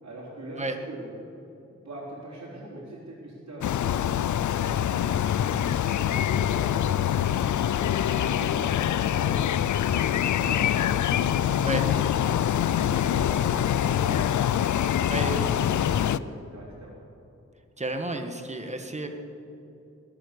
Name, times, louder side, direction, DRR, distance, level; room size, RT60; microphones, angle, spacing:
voice 1, 0.0-1.1 1.7-5.1 5.4-9.4 9.9-10.9 11.2-12.5 12.8-14.3 14.5-16.9, right 1 dB, 65° right, -8 dB, 4.0 m, -41 dB
sound 1, 3.6-16.2, left 10 dB, 80° left, 0.4 m, -25 dB
voice 2, 15.1-15.5 17.8-19.1, right 2 dB, 25° right, 5 dB, 1.6 m, -31 dB
20.5 x 9.0 x 6.8 m, 2.8 s
wide cardioid pair, 70°, 29 cm